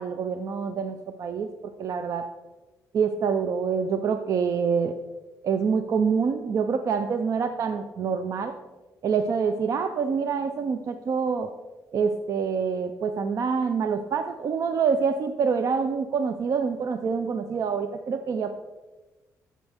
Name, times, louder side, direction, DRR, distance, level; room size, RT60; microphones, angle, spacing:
voice 1, 0.0-1.5 1.8-2.3 2.9-4.9 5.4-8.5 9.0-11.5 11.9-18.6, right 6 dB, 60° right, 8 dB, 0.6 m, -26 dB
12.5 x 7.4 x 3.5 m, 1.2 s
cardioid pair, 95°, 6 cm